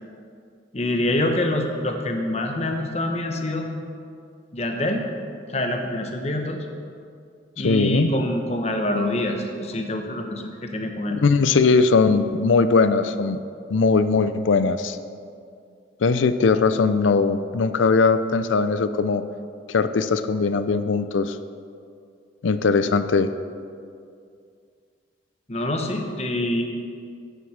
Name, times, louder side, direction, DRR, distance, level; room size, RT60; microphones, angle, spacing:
voice 1, 0.7-3.7 4.5-5.1 5.5-6.7 7.6-11.2 25.5-26.6, left 1 dB, 35° left, 4 dB, 1.0 m, -25 dB
voice 2, 7.6-8.1 11.1-13.4 13.7-15.0 16.0-19.2 19.7-21.4 22.4-23.3, left 4 dB, 90° left, 12 dB, 0.5 m, -20 dB
9.2 x 7.5 x 6.4 m, 2.3 s
head